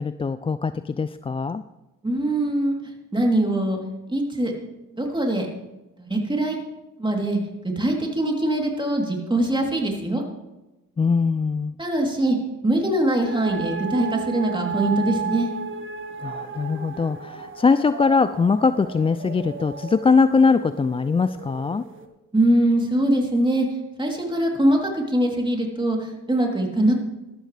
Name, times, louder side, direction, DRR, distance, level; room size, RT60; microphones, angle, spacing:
voice 1, 0.0-1.6 11.0-11.8 16.2-21.8, left 4 dB, 15° left, 13 dB, 0.3 m, -21 dB
voice 2, 2.0-2.8 3.1-3.8 4.1-4.5 4.9-5.5 6.0-6.6 7.0-7.4 7.6-10.2 11.8-12.4 12.6-15.5 22.3-23.7 24.0-27.0, right 1 dB, 15° right, 0 dB, 3.3 m, -22 dB
all-clear signal, 13.2-22.1, right 5 dB, 35° right, 1.5 m, -34 dB
13.0 x 13.0 x 3.4 m, 1.0 s
supercardioid pair, 65°, 34 cm